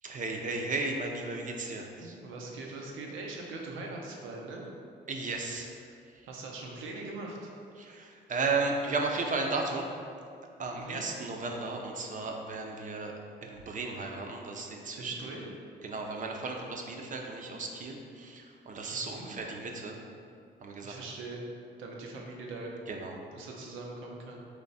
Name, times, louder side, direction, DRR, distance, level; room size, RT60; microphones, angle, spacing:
voice 1, 0.0-2.2 5.1-5.8 6.1-6.3 7.8-9.9 10.6-13.1 13.4-15.3 15.8-20.0 20.6-21.0 22.9-23.2, right 3 dB, 40° right, 1 dB, 0.6 m, -34 dB
voice 2, 2.0-4.6 6.3-7.5 10.7-11.0 15.0-15.5 18.9-19.3 20.8-21.5 21.8-22.7 23.3-24.4, right 2 dB, 85° right, -1 dB, 0.7 m, -41 dB
3.5 x 3.1 x 4.1 m, 2.3 s
cardioid pair, 90°, 20 cm